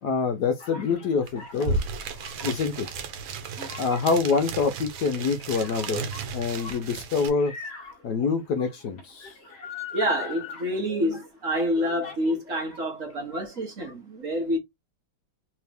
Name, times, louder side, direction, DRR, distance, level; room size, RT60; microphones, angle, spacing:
voice 1, 0.0-1.8 2.4-2.9 3.8-6.1 6.3-7.5 8.0-9.3, left 5 dB, 65° left, 1.1 m, -26 dB
sound 1, 0.6-12.8 13.1-13.9, left 5 dB, 45° left, 0.9 m, -43 dB
sound 2, 1.3-1.4 1.5-7.3, right 4 dB, 80° right, 1.6 m, -34 dB
voice 2, 9.9-14.6, equal, 45° right, 1.5 m, -27 dB
3.6 x 3.3 x 3.3 m
omnidirectional pair, 2.1 m